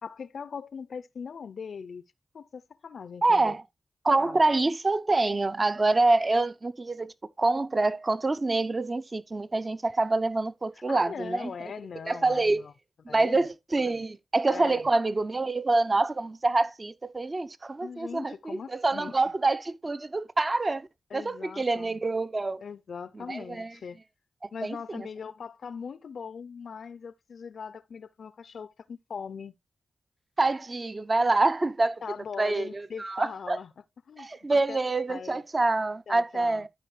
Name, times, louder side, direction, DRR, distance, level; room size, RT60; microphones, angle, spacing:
voice 1, 0.0-2.0 2.3-3.6 4.2-4.4 10.9-12.7 13.1-13.5 13.9-14.0 14.5-14.9 17.8-19.3 21.1-22.0 22.6-24.0 24.5-29.5 32.0-33.7 34.1-34.8 35.1-35.4 36.1-36.7, left 6 dB, 75° left, 0.4 m, -40 dB
voice 2, 3.2-3.6 4.0-7.1 7.4-11.5 12.1-12.7 13.1-20.9 21.1-22.6 23.1-23.7 24.6-25.1 30.4-32.0 32.4-33.6 34.2-36.7, right 2 dB, 40° right, 0.7 m, -26 dB
13.0 x 5.0 x 3.2 m
cardioid pair, 40°, 0 cm